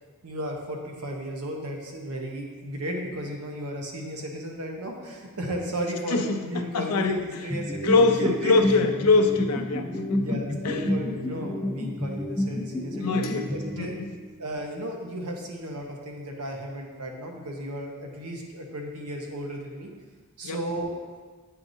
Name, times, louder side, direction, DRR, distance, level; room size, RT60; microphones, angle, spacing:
voice 1, 0.2-8.5 10.2-14.0 14.4-19.9 20.4-21.0, right 1 dB, 90° right, 1 dB, 0.9 m, -34 dB
voice 2, 6.1-7.2 7.8-10.4 10.6-10.8 13.0-14.1 20.4-20.6, left 3 dB, 85° left, 5 dB, 0.5 m, -24 dB
sound 1, 7.5-14.2, left 1 dB, 5° left, 0.5 m, -30 dB
sound 2, 13.2-15.6, right 1 dB, 40° left, 0.8 m, -44 dB
8.8 x 4.7 x 2.7 m, 1.5 s
head